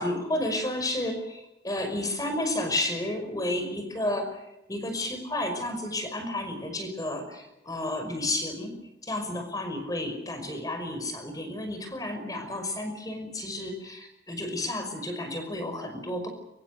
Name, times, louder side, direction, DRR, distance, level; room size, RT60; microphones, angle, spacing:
voice 1, 0.0-4.4 4.7-8.7 9.0-16.3, left 1 dB, 20° left, 6 dB, 5.6 m, -31 dB
24.5 x 24.0 x 6.8 m, 0.89 s
head